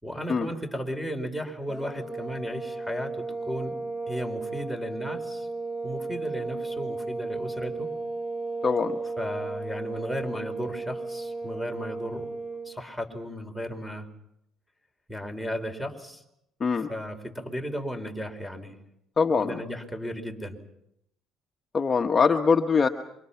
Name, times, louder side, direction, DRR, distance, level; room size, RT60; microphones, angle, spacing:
voice 1, 0.0-3.8 4.1-5.5 5.8-7.9 9.2-12.3 12.6-14.1 15.1-16.2 16.9-18.8 19.4-20.6, equal, ahead, 7 dB, 4.8 m, -35 dB
sound 1, 1.7-12.7, right 3 dB, 20° right, 5.2 m, -34 dB
voice 2, 19.2-19.5 21.7-22.9, left 5 dB, 30° left, 5 dB, 1.3 m, -22 dB
27.5 x 25.0 x 5.9 m, 0.80 s
supercardioid pair, 85°, 0 cm